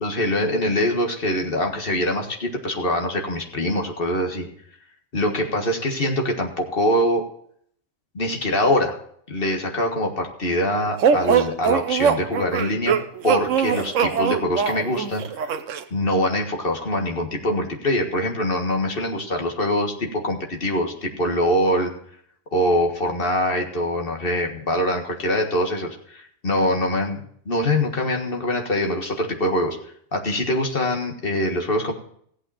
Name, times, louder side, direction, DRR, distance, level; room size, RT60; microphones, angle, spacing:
voice 1, 0.0-4.5 5.1-7.3 8.1-9.0 9.3-13.0 13.2-15.5 15.9-21.9 22.5-29.8 30.1-31.9, left 1 dB, 45° left, 2 dB, 1.9 m, -23 dB
sound 1, 11.0-15.8, right 7 dB, 80° right, 1.1 m, -21 dB
15.0 x 8.5 x 4.2 m, 0.65 s
omnidirectional pair, 1.3 m